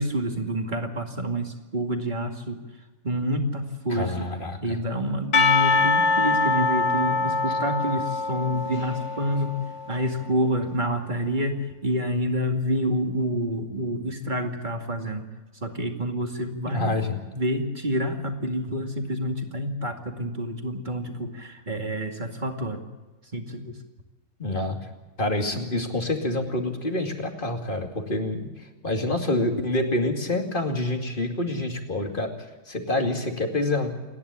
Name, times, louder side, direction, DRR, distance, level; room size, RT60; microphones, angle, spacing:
voice 1, 0.0-2.6 3.0-4.3 4.6-9.6 9.9-15.3 15.6-17.0 17.3-22.8 23.3-23.8, equal, 30° right, 4 dB, 2.4 m, -28 dB
voice 2, 3.9-4.6 16.6-17.2 24.4-24.9 25.2-32.3 32.7-33.9, left 2 dB, 35° left, 4 dB, 2.6 m, -27 dB
Percussion / Church bell, 5.3-10.1, left 3 dB, 55° left, 1.4 m, -24 dB
28.5 x 11.0 x 8.5 m, 1.2 s
omnidirectional pair, 1.6 m